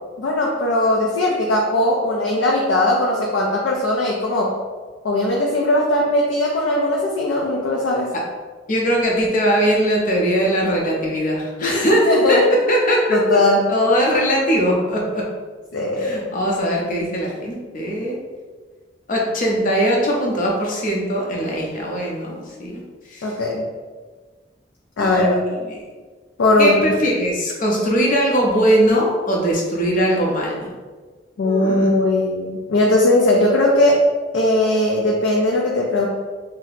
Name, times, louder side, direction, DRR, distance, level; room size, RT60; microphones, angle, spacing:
voice 1, 0.2-4.5 5.0-8.1 11.6-11.7 12.1-12.4 13.1-13.6 15.7-16.2 23.2-23.7 25.0-25.3 26.4-26.9 31.4-34.1 34.3-36.1, left 1 dB, 85° left, -2 dB, 0.4 m, -19 dB
voice 2, 8.7-12.4 12.6-13.2 13.7-15.2 16.0-18.2 19.1-22.8 23.1-23.3 25.0-25.8 26.6-30.7 31.4-31.9, equal, 45° left, -2 dB, 0.6 m, -20 dB
2.7 x 2.0 x 4.0 m, 1.4 s
head